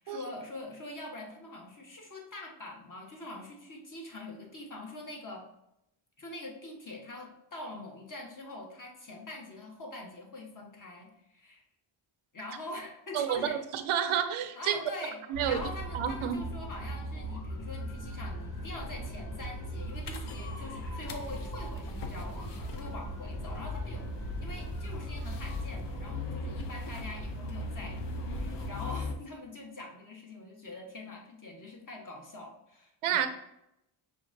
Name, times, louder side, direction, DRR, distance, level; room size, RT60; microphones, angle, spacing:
voice 1, 0.0-5.5 6.2-11.6 12.3-13.6 14.5-33.3, left 2 dB, 40° left, 1.2 m, -44 dB
voice 2, 13.1-14.8 15.3-15.6 15.9-16.4 33.0-33.3, right 9 dB, 85° right, 0.6 m, -29 dB
sound 1, 15.3-28.7, right 1 dB, 75° left, 1.3 m, -39 dB
sound 2, 20.0-29.2, left 4 dB, 60° left, 0.6 m, -41 dB
5.8 x 2.4 x 2.6 m
cardioid pair, 60°, 49 cm